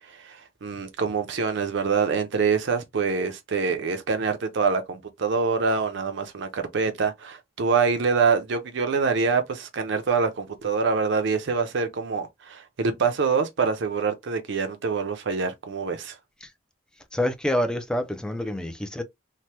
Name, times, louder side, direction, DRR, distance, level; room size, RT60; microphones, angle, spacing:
voice 1, 0.1-16.2, right 5 dB, 65° right, 0.5 m, -25 dB
voice 2, 17.1-19.0, left 1 dB, 5° left, 0.4 m, -27 dB
2.8 x 2.1 x 3.2 m
head